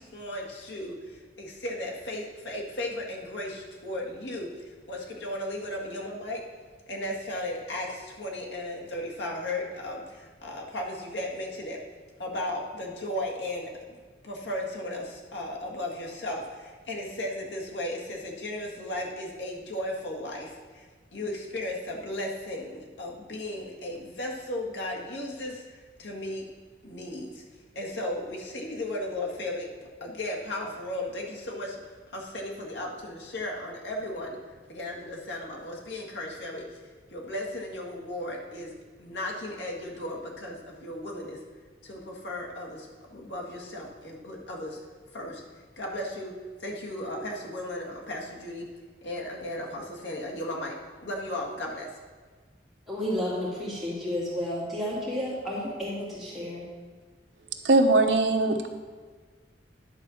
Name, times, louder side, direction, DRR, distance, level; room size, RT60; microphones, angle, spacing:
voice 1, 0.0-6.4 6.9-11.8 12.2-26.5 26.8-27.4 27.7-29.7 30.0-34.4 34.7-36.7 37.1-38.7 39.0-41.4 41.8-44.8 45.1-45.4 45.7-46.3 46.6-48.7 49.0-51.9, left 1 dB, 80° left, -1 dB, 1.8 m, -35 dB
voice 2, 52.9-56.7, left 1 dB, ahead, -8 dB, 2.9 m, -31 dB
voice 3, 57.6-58.7, right 2 dB, 75° right, 5 dB, 0.9 m, -20 dB
10.5 x 4.4 x 7.0 m, 1.5 s
head